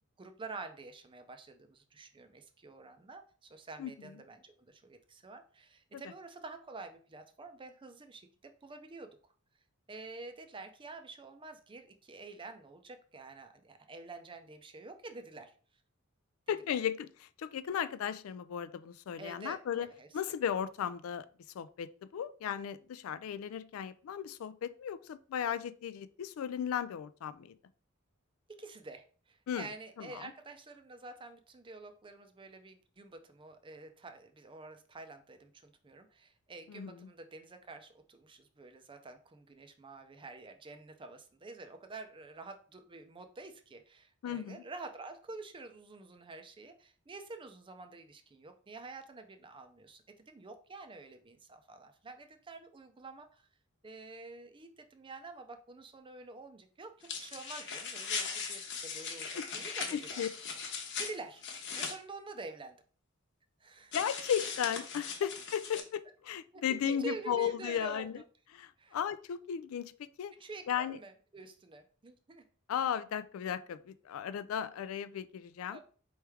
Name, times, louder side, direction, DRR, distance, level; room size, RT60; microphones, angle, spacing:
voice 1, 0.0-9.2 9.9-15.5 16.5-16.8 19.2-20.1 28.5-53.5 53.8-60.2 61.0-61.4 61.7-62.8 63.6-64.0 66.5-68.1 68.8-69.0 70.4-72.4 75.7-75.8, right 3 dB, 25° right, 8 dB, 0.5 m, -48 dB
voice 2, 16.5-17.1 17.4-19.9 20.1-21.3 21.5-27.6 29.5-29.7 30.0-30.3 36.7-37.1 44.2-44.6 59.4-59.5 59.9-60.3 63.9-68.2 68.5-70.3 70.7-71.0 72.7-75.8, left 8 dB, 75° left, 14 dB, 0.3 m, -35 dB
sound 1, 57.0-61.9 63.9-65.8, left 5 dB, 60° left, 0.9 m, -39 dB
4.6 x 3.2 x 3.4 m, 0.41 s
head